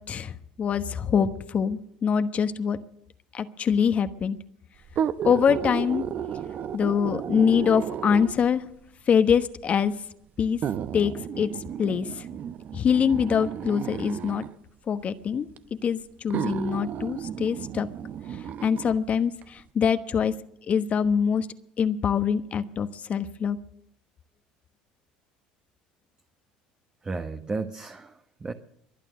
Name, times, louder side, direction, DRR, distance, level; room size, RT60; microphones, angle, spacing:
voice 1, 0.6-2.8 3.3-4.4 5.2-6.0 6.7-8.6 9.1-9.9 10.4-10.6 10.9-11.5 11.8-12.2 12.7-14.4 14.9-15.5 15.8-16.0 16.2-17.9 18.6-20.3 20.7-21.5 21.8-23.6, left 7 dB, 40° left, 10 dB, 1.2 m, -24 dB
sound 1, 4.8-8.5 9.4-9.5 10.6-14.5 15.6-15.7 16.3-19.0 19.4-19.5, right 9 dB, 50° right, 0.8 m, -33 dB
voice 2, 27.0-28.5, right 3 dB, 25° right, 7 dB, 1.2 m, -33 dB
23.5 x 9.0 x 6.4 m, 0.71 s
supercardioid pair, 85°, 3 cm